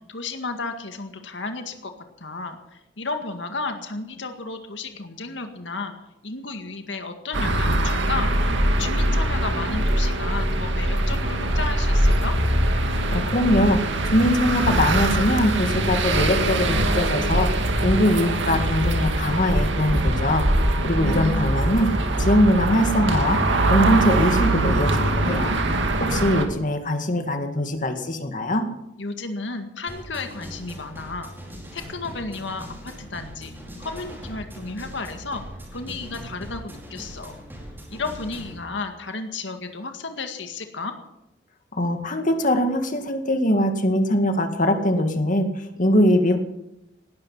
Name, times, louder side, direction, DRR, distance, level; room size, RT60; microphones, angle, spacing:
voice 1, 0.1-1.9 2.2-5.9 6.2-8.3 8.8-12.4 21.0-21.6 29.0-31.3 31.7-33.5 33.8-35.4 35.7-37.4 37.9-40.9, left 3 dB, 75° left, 6 dB, 2.0 m, -33 dB
sound 1, 7.3-26.5, right 1 dB, 75° right, 2.1 m, -22 dB
voice 2, 13.1-21.9 22.2-23.4 23.7-25.6 26.0-28.6 41.7-46.4, left 1 dB, 45° left, 6 dB, 2.1 m, -22 dB
sound 2, 29.9-38.6, equal, 10° right, 5.2 m, -40 dB
18.5 x 12.5 x 5.7 m, 0.87 s
head